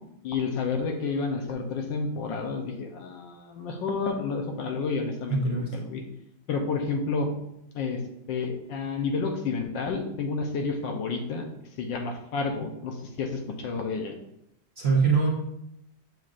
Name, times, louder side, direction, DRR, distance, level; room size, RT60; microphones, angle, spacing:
voice 1, 0.2-6.0 6.5-7.3 7.7-8.0 8.3-11.4 11.8-14.2, left 4 dB, 75° left, 3 dB, 1.3 m, -30 dB
voice 2, 5.3-5.7 14.8-15.3, right 4 dB, 40° right, -3 dB, 1.1 m, -23 dB
7.0 x 6.3 x 2.5 m, 0.81 s
omnidirectional pair, 2.2 m